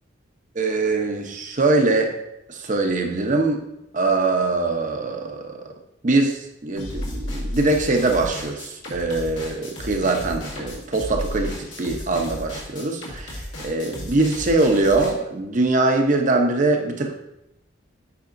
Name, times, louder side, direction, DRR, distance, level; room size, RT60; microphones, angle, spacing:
voice 1, 0.5-2.2 2.5-3.6 3.9-5.6 6.0-17.1, right 2 dB, 45° right, 3 dB, 0.8 m, -22 dB
sound 1, 6.8-15.1, left 1 dB, 75° left, 1.7 m, -33 dB
8.5 x 4.8 x 2.6 m, 0.85 s
head